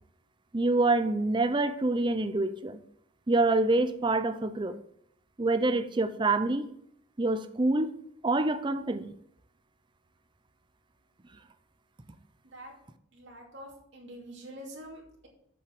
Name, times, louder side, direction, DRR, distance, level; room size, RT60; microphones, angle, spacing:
voice 1, 0.5-2.8 3.3-4.8 5.4-6.7 7.2-7.9 8.2-9.1, right 2 dB, 25° right, 11 dB, 0.5 m, -26 dB
voice 2, 13.1-15.3, equal, 60° right, -2 dB, 2.7 m, -46 dB
8.2 x 5.7 x 6.1 m, 0.71 s
head